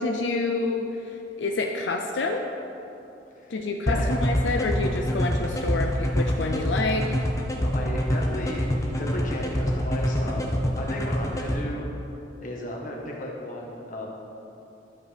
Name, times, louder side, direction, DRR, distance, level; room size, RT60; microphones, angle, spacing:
voice 1, 0.0-2.4 3.5-7.1, left 3 dB, 90° left, 2 dB, 0.5 m, -28 dB
sound 1, 3.9-11.6, equal, 20° left, 0.8 m, -25 dB
voice 2, 7.6-11.9 12.4-14.1, left 1 dB, 50° left, -2 dB, 1.4 m, -34 dB
11.0 x 7.2 x 3.4 m, 2.8 s
head